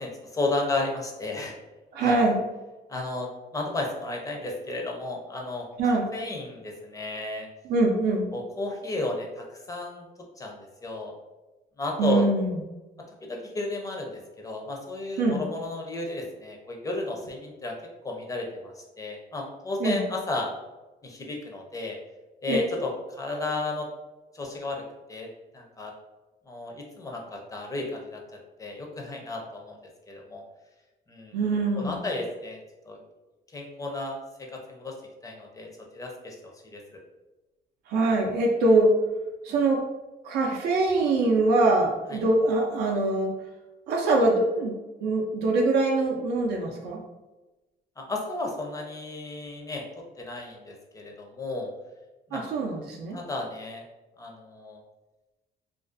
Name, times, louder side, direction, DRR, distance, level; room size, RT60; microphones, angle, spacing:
voice 1, 0.0-1.6 2.0-2.2 2.9-7.5 8.3-10.1 10.4-11.1 11.8-12.3 13.2-17.7 18.0-20.5 21.0-22.0 22.4-23.9 24.3-24.8 25.1-25.3 25.5-25.9 26.5-28.2 28.6-29.8 30.1-30.4 31.1-31.4 31.8-32.6 32.9-33.0 33.5-34.2 34.7-34.9 35.2-35.7 35.9-36.4 36.7-36.8 42.1-42.2 48.0-51.7 52.3-52.4 53.1-53.8 54.2-54.8, left 2 dB, 20° left, 0 dB, 0.5 m, -33 dB
voice 2, 1.9-2.4 5.8-6.1 7.6-8.3 12.0-12.6 15.2-15.4 19.8-20.0 22.5-22.6 31.3-32.0 37.9-38.9 39.4-39.8 40.2-43.3 43.9-44.7 45.0-47.0 52.3-53.2, right 2 dB, 70° right, 0 dB, 0.4 m, -23 dB
2.4 x 2.2 x 2.5 m, 1.1 s
cardioid pair, 110°, 17 cm